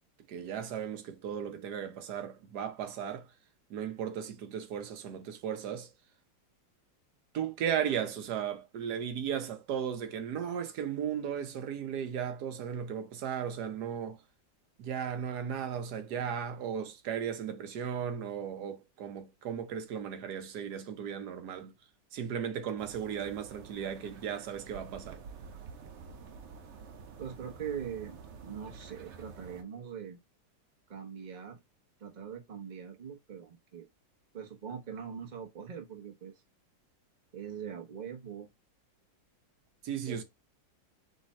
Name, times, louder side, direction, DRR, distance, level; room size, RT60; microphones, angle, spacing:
voice 1, 0.3-3.3 3.7-5.9 7.3-14.2 14.8-21.7 22.1-25.2 39.8-40.2, right 8 dB, 65° right, 1.3 m, -36 dB
sound 1, 22.8-29.6, right 5 dB, 85° right, 0.6 m, -49 dB
voice 2, 27.2-30.2 30.9-31.6 32.0-33.9 34.3-36.3 37.3-38.5 40.1-40.2, right 8 dB, 40° right, 0.7 m, -42 dB
3.7 x 3.2 x 4.1 m
omnidirectional pair, 2.0 m